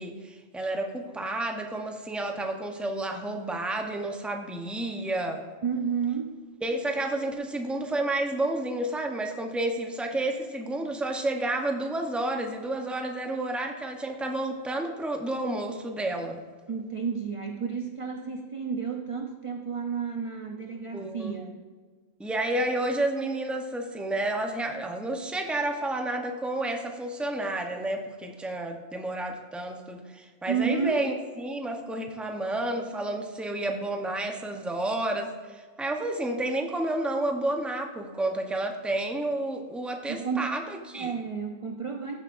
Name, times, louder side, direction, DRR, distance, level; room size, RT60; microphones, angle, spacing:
voice 1, 0.0-5.4 6.6-16.4 20.9-21.4 22.2-41.1, right 1 dB, ahead, 3 dB, 0.6 m, -30 dB
voice 2, 5.6-6.4 16.7-21.6 30.5-31.1 40.1-40.5 40.9-42.1, right 6 dB, 45° right, 3 dB, 0.4 m, -31 dB
14.0 x 7.5 x 2.5 m, 1.5 s
omnidirectional pair, 1.3 m